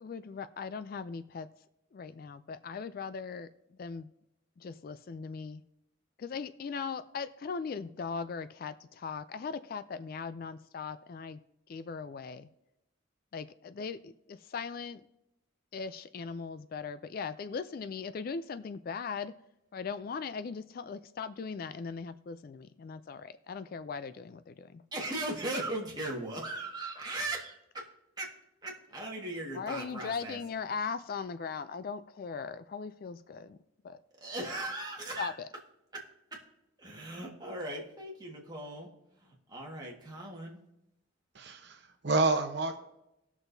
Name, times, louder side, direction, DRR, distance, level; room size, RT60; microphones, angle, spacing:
voice 1, 0.0-1.5 1.9-3.5 3.8-4.1 4.6-5.6 6.2-11.4 11.7-12.5 13.3-15.0 15.7-19.4 19.7-24.8 29.5-33.6 33.8-34.0 35.2-35.5, left 5 dB, 45° left, 0.3 m, -39 dB
voice 2, 24.9-27.9 28.2-28.3 28.6-30.4 34.2-35.3 35.9-36.0 36.3-36.4 36.8-38.9 39.2-40.6, right 2 dB, 20° right, 1.6 m, -38 dB
voice 3, 41.3-42.8, right 3 dB, 55° right, 0.9 m, -29 dB
18.0 x 6.1 x 2.7 m
head